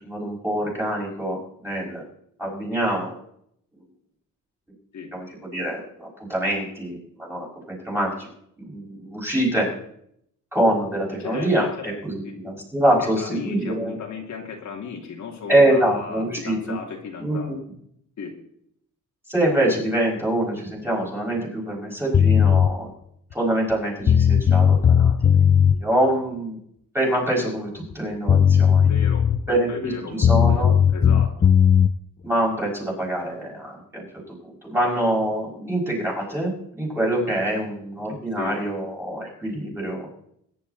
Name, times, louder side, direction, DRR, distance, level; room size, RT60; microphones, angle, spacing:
voice 1, 0.0-2.0 2.4-3.1 5.1-8.3 8.7-9.7 10.5-14.0 15.5-16.8 17.2-17.6 19.3-22.9 23.3-26.6 26.9-28.9 29.5-30.7 32.2-40.1, right 1 dB, 5° right, -3 dB, 5.9 m, -25 dB
voice 2, 11.2-11.5 11.8-12.0 12.2-12.5 12.8-17.5 18.2-18.4 28.8-31.5 38.4-38.5, left 5 dB, 60° left, 0 dB, 2.5 m, -36 dB
sound 1, 22.1-22.7 23.7-23.8 24.1-25.8 27.9-28.0 28.3-29.5 30.2-31.9, left 8 dB, 25° left, 0.4 m, -16 dB
22.0 x 10.5 x 4.1 m, 0.71 s
cardioid pair, 140°, 33 cm